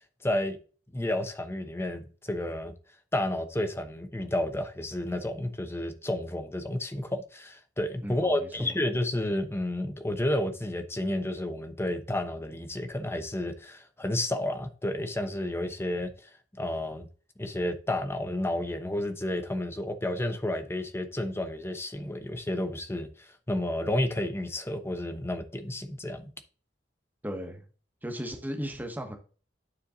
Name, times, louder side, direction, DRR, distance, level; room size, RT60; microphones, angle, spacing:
voice 1, 0.2-0.6 0.9-2.7 3.1-16.3 16.6-17.1 17.4-26.3, left 1 dB, 15° left, 0.9 m, -31 dB
voice 2, 8.0-8.8 27.2-27.6 28.0-29.2, equal, 10° right, 1.4 m, -36 dB
9.8 x 4.5 x 3.9 m
head